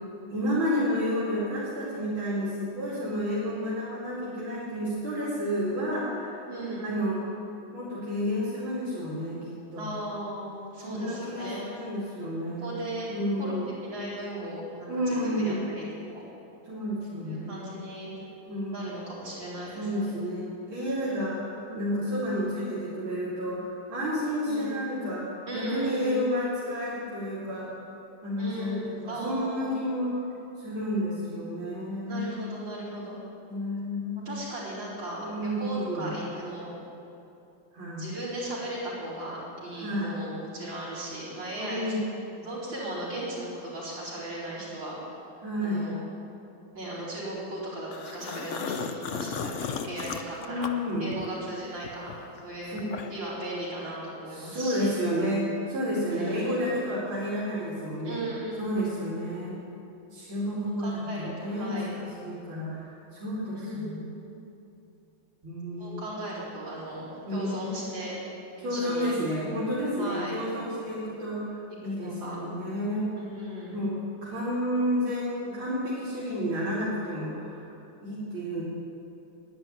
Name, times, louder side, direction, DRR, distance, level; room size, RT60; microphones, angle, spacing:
voice 1, 0.3-6.4 6.8-7.3 7.7-9.9 10.9-12.7 13.1-13.8 14.9-15.7 16.7-17.7 18.5-19.0 19.7-21.5 21.7-25.3 25.5-27.7 28.2-30.2 30.6-32.3 33.5-34.2 35.2-36.2 37.7-38.1 39.8-40.2 41.6-42.0 45.4-46.0 50.4-51.1 52.7-53.0 54.3-58.2 58.6-59.6 60.1-64.1 65.4-66.2 67.3-67.7 68.6-73.1 73.7-77.7 78.0-78.6, equal, 85° right, -8 dB, 3.6 m, -31 dB
voice 2, 6.5-6.9 9.8-11.7 12.6-13.1 13.4-13.5 13.8-16.2 17.1-18.2 18.7-20.1 21.7-21.9 24.4-24.8 25.5-26.3 28.4-29.8 31.9-33.2 34.2-36.7 38.0-41.9 42.4-45.0 45.6-46.0 46.7-50.7 51.0-52.1 52.4-54.9 56.1-56.6 58.0-58.9 60.6-62.0 63.5-63.9 65.8-68.3 68.6-69.1 70.0-70.4 71.9-72.4 73.2-73.9, right 1 dB, 65° right, -8 dB, 5.1 m, -37 dB
sound 1, 47.9-51.5 51.8-53.3, left 6 dB, 85° left, 0.6 m, -35 dB
11.0 x 10.0 x 9.8 m, 2.9 s
omnidirectional pair, 2.2 m